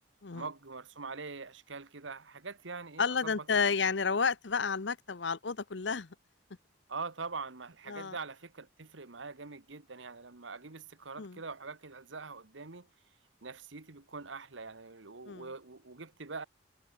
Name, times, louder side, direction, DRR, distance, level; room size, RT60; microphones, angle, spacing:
voice 1, 0.3-3.3 4.1-4.2 6.9-12.9 13.4-16.5, right 4 dB, 75° right, 1.5 m, -43 dB
voice 2, 3.0-6.1 7.9-8.2 11.2-11.4 15.3-15.5, left 5 dB, 65° left, 0.8 m, -31 dB
head